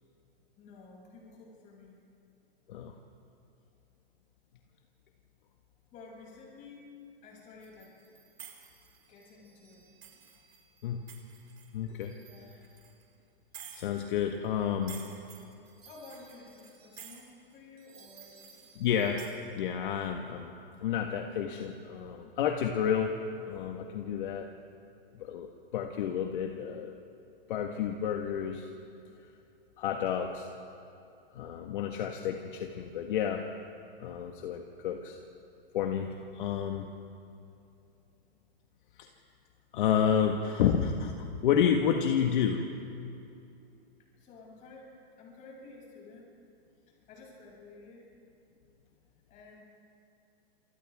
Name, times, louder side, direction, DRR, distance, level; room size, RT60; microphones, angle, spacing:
voice 1, 0.6-2.0 3.3-3.4 5.9-6.9 7.2-7.9 9.1-9.8 12.3-12.6 15.8-18.8 44.2-46.3 46.9-48.1 49.3-49.6, left 3 dB, 25° left, -3 dB, 7.3 m, -52 dB
sound 1, 7.6-13.0 13.5-14.5 14.8-19.3, right 8 dB, 80° right, 5.3 m, -52 dB
voice 2, 11.7-12.1 13.7-15.0 18.8-19.2 19.5-20.5 20.8-23.2 23.5-24.5 25.2-27.0 27.5-28.7 29.8-30.5 31.3-33.5 34.0-35.2 35.7-36.9 39.0-39.1 39.7-42.6, left 8 dB, 55° left, 3 dB, 1.7 m, -30 dB
29.5 x 28.0 x 3.6 m, 2.7 s
hypercardioid pair, 155°, 31 cm